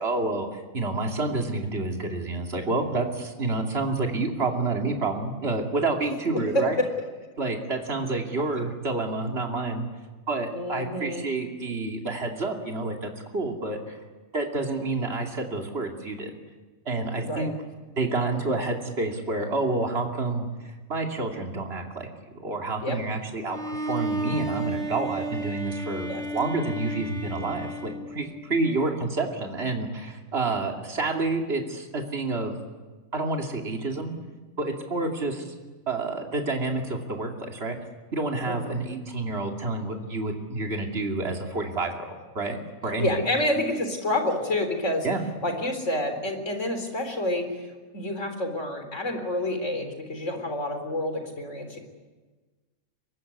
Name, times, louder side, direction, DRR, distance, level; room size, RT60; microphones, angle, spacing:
voice 1, 0.0-6.8 7.4-9.8 10.3-14.0 14.3-16.3 16.8-17.5 18.0-22.1 22.4-32.5 33.1-34.1 34.6-35.4 35.9-37.8 38.1-42.6 42.8-43.1 45.0-45.2, right 3 dB, 45° right, 2 dB, 3.0 m, -29 dB
voice 2, 6.3-6.9 10.5-11.2 17.2-17.5 22.8-23.0 26.1-26.2 28.6-29.0 38.5-38.8 43.0-45.1 45.4-47.7 47.9-51.8, left 1 dB, 55° left, 6 dB, 4.2 m, -28 dB
Bowed string instrument, 23.5-28.5, right 1 dB, ahead, 2.7 m, -33 dB
24.5 x 21.5 x 9.7 m, 1.3 s
omnidirectional pair, 1.5 m